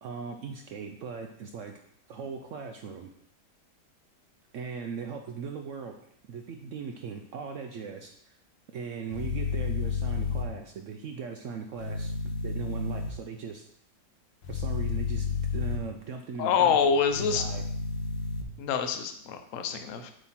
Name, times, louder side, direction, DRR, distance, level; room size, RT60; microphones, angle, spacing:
voice 1, 0.0-1.7 2.1-3.1 4.5-5.9 6.3-8.4 8.7-12.1 12.4-13.7 14.5-17.0 17.3-17.6, right 6 dB, 80° right, 4 dB, 0.6 m, -39 dB
sound 1, 9.1-10.4 11.8-13.1 14.4-15.8 17.1-18.4, left 5 dB, 85° left, 1.4 m, -31 dB
voice 2, 16.4-17.4 18.6-20.1, left 6 dB, 60° left, 6 dB, 0.9 m, -26 dB
7.8 x 3.1 x 5.7 m, 0.71 s
omnidirectional pair, 1.9 m